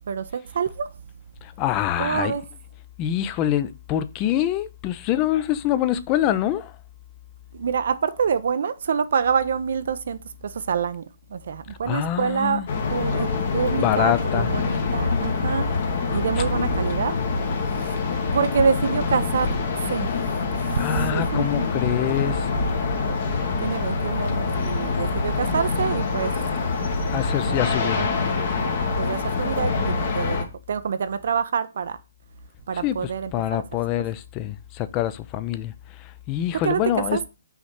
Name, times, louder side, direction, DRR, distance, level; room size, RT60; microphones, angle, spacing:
voice 1, 0.1-0.9 2.0-2.4 7.5-12.6 12.9-15.7 16.1-17.2 17.7-17.9 18.3-20.1 20.6-21.7 23.6-26.3 27.9-28.4 29.0-32.0 32.7-33.6 36.5-37.3, right 6 dB, 60° right, 0.4 m, -26 dB
voice 2, 1.4-2.3 3.0-6.7 11.9-12.6 13.1-13.3 13.7-14.8 16.1-16.2 20.8-22.5 27.1-28.1 32.8-33.0 33.3-35.7 36.0-37.2, left 12 dB, 25° left, 0.5 m, -25 dB
sound 1, 12.7-30.4, left 4 dB, 50° left, 1.2 m, -25 dB
5.6 x 3.2 x 5.6 m
figure-of-eight pair, 130°, 0 cm